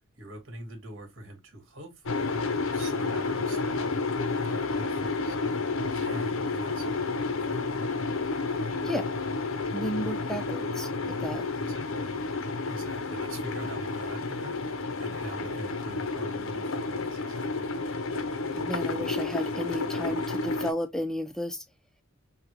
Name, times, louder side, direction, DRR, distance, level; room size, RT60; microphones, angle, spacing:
voice 1, 0.2-2.4 2.7-4.1 4.4-5.4 5.8-7.7 11.6-17.8, right 1 dB, 60° right, 1.9 m, -44 dB
sound 1, 2.1-20.7, left 3 dB, 65° left, 0.7 m, -31 dB
voice 2, 9.7-10.9 11.2-11.5 18.5-21.6, equal, ahead, 0.5 m, -33 dB
5.8 x 2.4 x 3.2 m
head